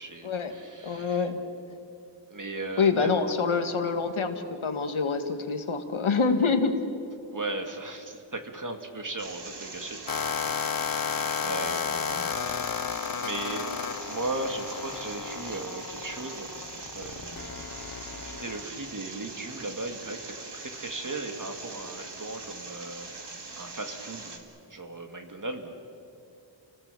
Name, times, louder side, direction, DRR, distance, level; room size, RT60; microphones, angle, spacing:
voice 1, 0.0-1.3 2.3-3.3 7.3-10.2 10.9-12.8 13.2-13.7 14.1-16.6 16.9-17.7 18.2-24.4 24.7-25.8, right 2 dB, 40° right, 5 dB, 2.3 m, -37 dB
voice 2, 0.8-1.4 2.8-6.7, left 5 dB, 90° left, 7 dB, 1.7 m, -26 dB
sound 1, 9.2-24.4, right 3 dB, 60° right, 2.4 m, -42 dB
sound 2, 10.1-18.6, left 7 dB, 45° left, 0.7 m, -33 dB
29.5 x 18.5 x 7.0 m, 2.6 s
wide cardioid pair, 95°, 47 cm